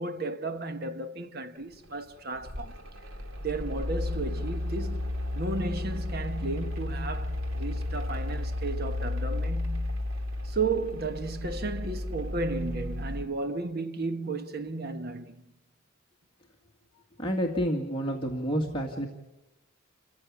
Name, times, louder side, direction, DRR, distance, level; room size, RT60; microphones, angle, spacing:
voice 1, 0.0-2.8 3.4-10.0 10.4-15.4, right 3 dB, 50° right, 1.4 m, -34 dB
Mechanical fan, 1.9-13.2, left 1 dB, 85° right, 2.4 m, -33 dB
voice 2, 17.2-19.1, equal, 25° left, 2.1 m, -29 dB
28.0 x 15.5 x 8.7 m
head